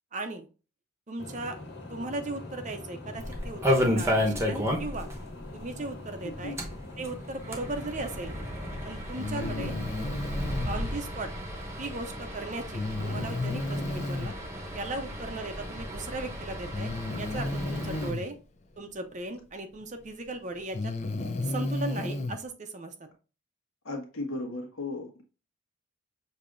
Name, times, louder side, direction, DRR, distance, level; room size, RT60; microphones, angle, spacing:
voice 1, 0.1-0.5 1.1-1.6 1.9-5.1 5.5-6.6 7.0-8.3 8.8-9.7 10.6-11.3 11.8-14.3 14.7-16.9 17.2-18.3 18.8-20.9 21.4-22.9, right 2 dB, 35° right, 7 dB, 0.6 m, -37 dB
sound 1, 1.2-8.9, left 2 dB, 55° left, 1.6 m, -43 dB
sound 2, 3.2-5.2 5.4-5.5 5.8-5.9 6.4-18.1, equal, 15° right, 0.9 m, -32 dB
voice 2, 6.2-6.6 9.3-9.7 17.9-18.1 23.8-25.1, left 2 dB, 80° left, 1 dB, 1.4 m, -36 dB
Breathing, 9.2-10.8 12.7-14.3 15.7-15.8 16.7-18.3 19.8-19.9 20.6-22.4, left 2 dB, 35° left, 0.5 m, -32 dB
6.7 x 2.8 x 2.5 m, 0.34 s
head